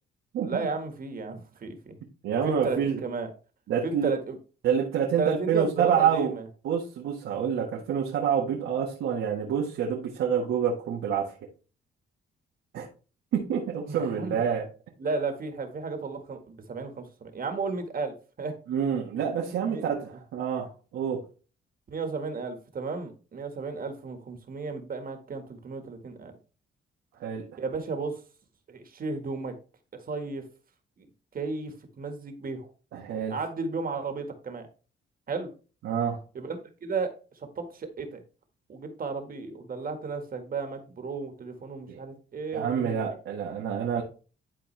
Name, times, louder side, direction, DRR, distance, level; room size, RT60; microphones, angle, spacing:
voice 1, 0.4-2.0 2.4-3.3 3.8-4.4 5.2-6.5 13.9-14.5 15.0-18.6 19.7-19.8 21.9-26.3 27.6-28.2 28.7-29.6 29.9-30.5 31.0-31.1 31.3-32.7 33.3-34.7 35.3-35.5 36.3-38.2 38.7-43.1, right 4 dB, 45° right, 7 dB, 1.7 m, -34 dB
voice 2, 2.2-3.0 3.7-4.1 4.6-6.3 6.6-11.3 12.7-12.9 13.3-14.7 18.7-21.2 27.2-27.6 32.9-33.4 35.8-36.2 41.9-42.0 42.5-44.0, right 7 dB, 85° right, -2 dB, 1.6 m, -27 dB
11.5 x 4.4 x 3.3 m, 0.36 s
cardioid pair, 95°, 20 cm